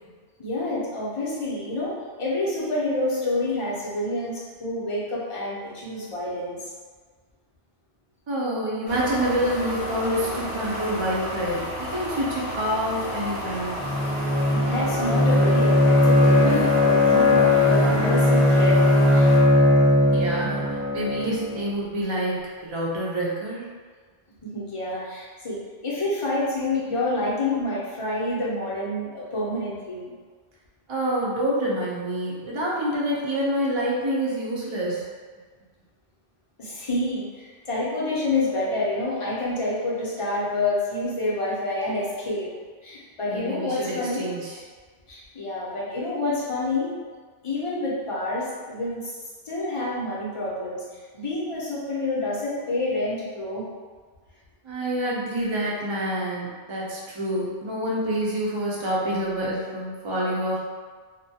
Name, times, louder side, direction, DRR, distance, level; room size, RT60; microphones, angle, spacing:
voice 1, 0.4-1.9 2.2-6.6 14.5-18.8 19.1-19.3 24.5-25.6 25.8-30.1 36.6-42.5 42.8-44.3 45.1-46.9 47.4-49.2 49.4-50.8 51.1-53.6, left 2 dB, 40° left, -7 dB, 0.5 m, -28 dB
voice 2, 8.3-13.8 20.1-23.7 30.9-35.1 43.3-44.6 54.6-60.6, right 1 dB, 50° right, -5 dB, 0.3 m, -27 dB
sound 1, 8.9-19.4, left 1 dB, 65° left, 0.8 m, -33 dB
Bowed string instrument, 13.8-21.6, left 1 dB, 10° right, 0.6 m, -19 dB
2.2 x 2.1 x 2.7 m, 1.5 s
omnidirectional pair, 1.1 m